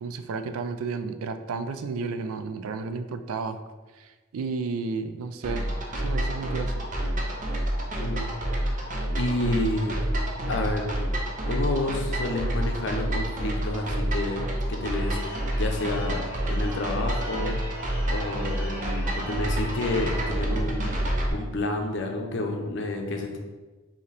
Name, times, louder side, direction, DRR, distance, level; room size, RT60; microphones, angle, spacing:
voice 1, 0.0-3.6 3.9-5.7 5.9-6.8, right 4 dB, 85° right, 9 dB, 0.4 m, -32 dB
sound 1, 5.4-21.3, right 1 dB, 35° right, 0.6 m, -28 dB
voice 2, 7.9-8.3 9.2-10.0 10.5-10.9 11.5-17.8 18.1-23.4, left 2 dB, 55° left, 3 dB, 0.6 m, -30 dB
Church bell / Car / Alarm, 14.9-20.5, right 1 dB, 10° right, 1.0 m, -40 dB
4.8 x 2.8 x 3.3 m, 1.3 s
head